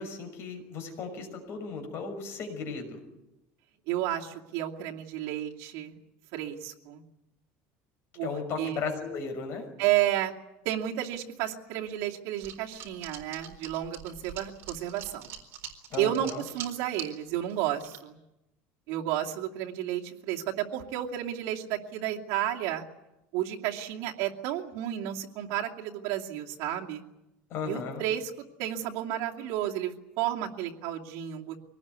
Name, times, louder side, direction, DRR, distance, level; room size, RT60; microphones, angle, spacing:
voice 1, 0.0-3.0 8.2-9.7 15.9-16.4 27.5-28.0, left 5 dB, 45° left, 5 dB, 6.1 m, -36 dB
voice 2, 3.9-6.0 6.3-7.0 8.2-8.3 8.6-8.8 9.8-10.3 10.6-15.3 16.0-18.2 18.9-22.8 23.3-27.0 27.6-28.3 28.6-31.6, right 12 dB, 70° right, 0 dB, 2.6 m, -32 dB
sound 1, 12.4-17.1 17.5-18.0, right 9 dB, 45° right, 4.2 m, -42 dB
25.0 x 19.5 x 9.7 m, 0.94 s
cardioid pair, 165°, 6 cm